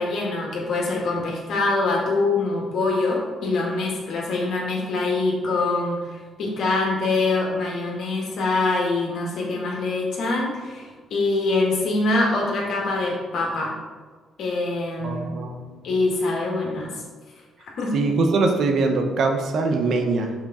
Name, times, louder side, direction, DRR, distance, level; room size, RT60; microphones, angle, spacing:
voice 1, 0.0-13.7 14.4-15.3 15.8-17.0 17.8-18.0, left 3 dB, 70° left, -2 dB, 1.9 m, -24 dB
voice 2, 15.0-15.7 17.9-20.3, right 3 dB, 70° right, 4 dB, 0.9 m, -22 dB
5.7 x 5.2 x 4.2 m, 1.4 s
cardioid pair, 90°, 0 cm